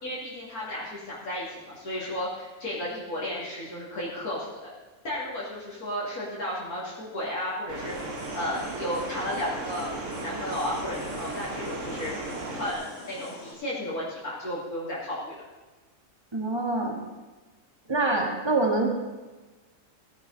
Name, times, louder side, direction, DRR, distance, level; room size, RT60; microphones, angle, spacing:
voice 1, 0.0-4.6 5.0-7.9 8.3-12.2 12.6-15.4, left 1 dB, 85° left, -7 dB, 3.1 m, -33 dB
sound 1, 7.7-13.5, left 2 dB, 70° left, 3.8 m, -44 dB
sound 2, 7.7-12.7, right 2 dB, 60° right, 1.7 m, -36 dB
voice 2, 16.3-17.0 17.9-18.9, right 2 dB, 20° right, 1 dB, 1.8 m, -25 dB
16.5 x 10.5 x 4.1 m, 1.2 s
omnidirectional pair, 1.5 m